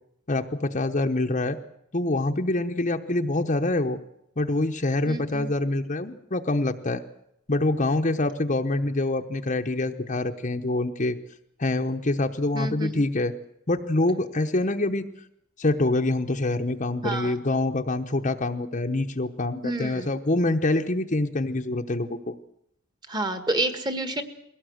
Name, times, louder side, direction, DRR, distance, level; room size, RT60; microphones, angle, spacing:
voice 1, 0.3-1.6 1.9-4.0 4.4-7.0 7.5-11.2 11.6-13.3 13.7-15.1 15.6-22.3, left 2 dB, 35° left, 4 dB, 0.9 m, -25 dB
voice 2, 5.1-5.5 12.5-13.0 17.0-17.3 19.6-20.1 23.1-24.2, right 2 dB, 20° right, 10 dB, 1.6 m, -29 dB
21.5 x 17.5 x 7.9 m, 0.79 s
head